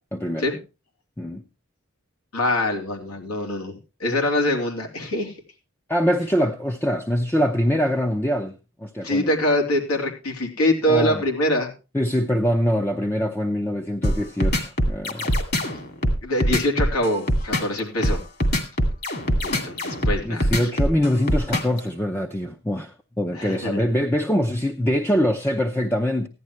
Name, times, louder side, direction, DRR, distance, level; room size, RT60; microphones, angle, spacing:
voice 1, 0.1-0.5 1.2-1.4 5.9-9.3 10.9-11.2 11.9-15.3 20.2-26.3, equal, 10° left, 0.6 m, -24 dB
voice 2, 2.3-5.3 9.0-11.7 16.2-18.2 19.4-20.7 23.3-23.9, left 1 dB, 85° left, 3.3 m, -24 dB
sound 1, 14.0-21.8, equal, 45° left, 2.3 m, -22 dB
15.5 x 11.0 x 3.2 m
head